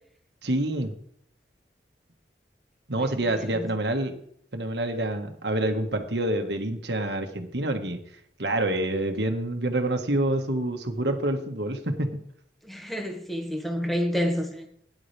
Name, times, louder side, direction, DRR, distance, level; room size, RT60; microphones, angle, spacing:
voice 1, 0.4-0.9 2.9-4.1 4.5-8.0 8.4-12.1, right 1 dB, 70° right, 1.8 m, -27 dB
voice 2, 3.4-3.7 12.6-14.7, equal, ahead, 1.9 m, -29 dB
17.5 x 10.5 x 3.5 m
head